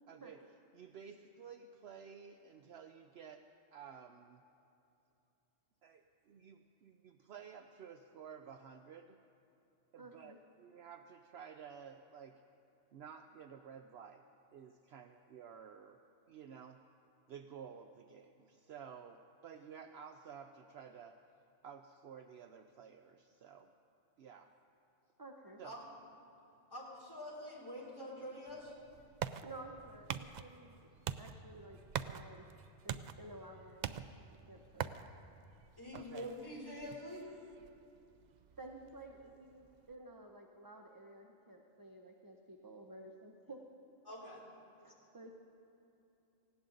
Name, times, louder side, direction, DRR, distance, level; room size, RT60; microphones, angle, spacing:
voice 1, 0.1-0.4 0.7-4.4 5.8-9.2 9.9-12.4 12.9-14.2 14.5-16.0 16.3-16.8 17.3-21.2 21.6-23.7 24.2-24.5 25.6-25.8 35.9-36.3, right 7 dB, 65° right, 7 dB, 0.8 m, -53 dB
voice 2, 10.0-10.4 25.2-25.6 29.4-30.8 31.2-32.5 32.8-34.0 34.5-34.9 38.6-43.6 44.8-45.3, right 2 dB, 20° right, 2 dB, 0.7 m, -53 dB
voice 3, 26.7-28.7 35.8-37.3 44.1-44.4, left 1 dB, 15° left, -5 dB, 3.4 m, -46 dB
sound 1, 28.5-39.9, right 8 dB, 85° right, 0.4 m, -46 dB
18.5 x 16.5 x 3.9 m, 2.8 s
omnidirectional pair, 1.3 m